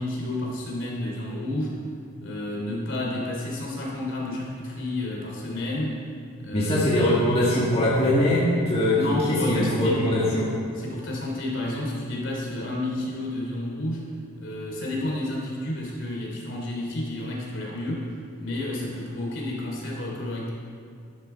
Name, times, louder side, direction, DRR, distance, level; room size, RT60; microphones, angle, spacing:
voice 1, 0.0-1.8 2.2-6.0 6.4-6.9 8.9-10.1 10.7-14.0 14.4-18.1 18.4-20.5, left 1 dB, 55° left, -2 dB, 3.3 m, -30 dB
voice 2, 6.5-9.0 9.3-10.5, left 1 dB, 25° left, -8 dB, 1.9 m, -22 dB
13.0 x 12.0 x 4.6 m, 2.3 s
head